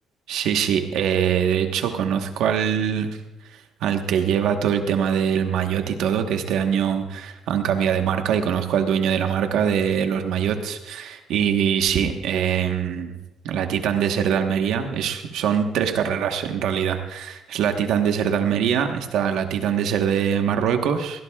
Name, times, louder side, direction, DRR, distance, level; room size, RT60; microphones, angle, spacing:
voice 1, 0.3-3.2 3.8-13.2 13.4-21.2, right 8 dB, 75° right, 6 dB, 1.2 m, -23 dB
20.5 x 16.5 x 2.4 m, 1.0 s
cardioid pair, 155°, 0 cm